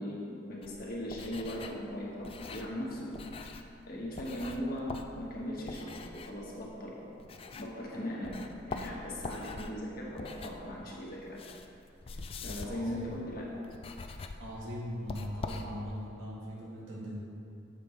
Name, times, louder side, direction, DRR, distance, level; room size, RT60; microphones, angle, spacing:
voice 1, 0.0-3.1 3.9-7.0 7.6-11.4 12.4-13.5, equal, 50° left, -4 dB, 1.3 m, -39 dB
sound 1, 0.6-7.9 8.2-16.1, left 3 dB, 30° left, 0.3 m, -44 dB
voice 2, 12.6-13.1 14.4-17.2, equal, 80° right, -5 dB, 1.6 m, -40 dB
7.5 x 5.3 x 4.2 m, 2.5 s
head